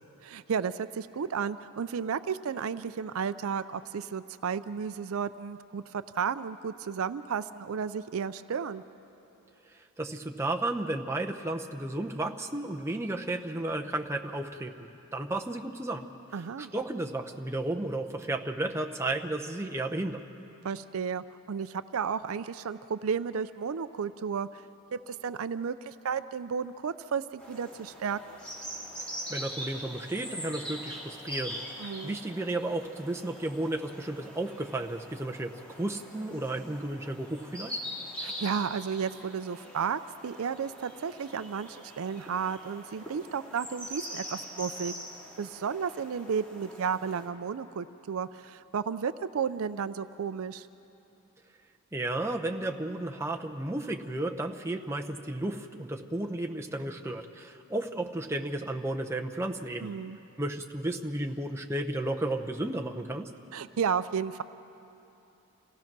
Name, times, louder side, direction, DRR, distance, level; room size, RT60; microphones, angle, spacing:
voice 1, 0.2-8.8 16.3-16.7 20.6-24.6 24.9-28.4 31.8-32.2 38.2-44.9 45.4-50.7 59.8-60.2 63.5-64.4, right 6 dB, 70° right, 14 dB, 0.4 m, -33 dB
voice 2, 9.7-16.1 16.3-20.2 29.3-37.8 51.9-59.9 60.4-63.3, right 2 dB, 10° right, 2 dB, 0.7 m, -33 dB
sound 1, 27.4-47.3, equal, 5° left, 2.2 m, -43 dB
27.0 x 16.5 x 6.0 m, 2.9 s
head